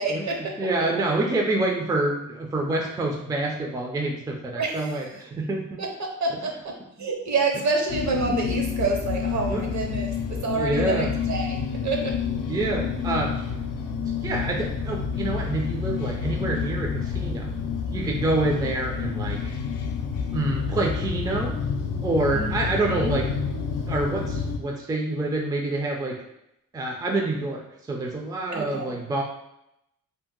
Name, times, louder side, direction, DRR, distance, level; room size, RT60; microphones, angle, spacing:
voice 1, 0.0-0.5 4.6-4.9 5.8-11.6 11.8-12.2 22.3-23.2 28.5-28.9, right 3 dB, 60° right, 1 dB, 0.7 m, -28 dB
voice 2, 0.6-5.8 8.1-8.6 9.5-9.7 10.5-11.1 12.5-13.3 14.2-17.5 17.9-19.5 20.3-21.6 22.0-23.3 23.9-26.2 26.7-29.2, right 2 dB, 10° right, 0 dB, 0.4 m, -27 dB
sound 1, 7.9-24.6, left 6 dB, 75° left, 0.5 m, -29 dB
2.7 x 2.0 x 3.7 m, 0.82 s
wide cardioid pair, 120°, 33 cm